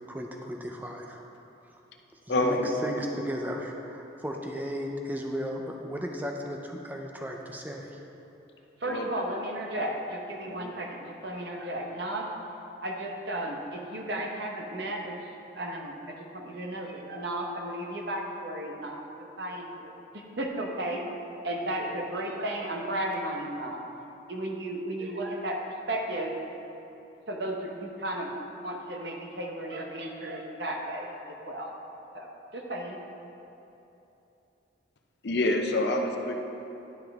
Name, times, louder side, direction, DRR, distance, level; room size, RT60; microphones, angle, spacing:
voice 1, 0.1-1.2 2.3-7.9, equal, 10° right, 1 dB, 0.5 m, -35 dB
voice 2, 2.3-2.7 8.9-9.1 10.5-10.7 35.2-36.3, left 2 dB, 55° left, 3 dB, 0.6 m, -27 dB
voice 3, 8.8-12.3 12.8-15.1 15.5-19.0 19.4-21.0 21.4-23.8 24.3-25.6 25.9-26.3 27.3-28.4 28.6-31.7 32.1-33.0, right 1 dB, 55° right, 1 dB, 0.9 m, -34 dB
11.0 x 5.6 x 3.5 m, 3.0 s
head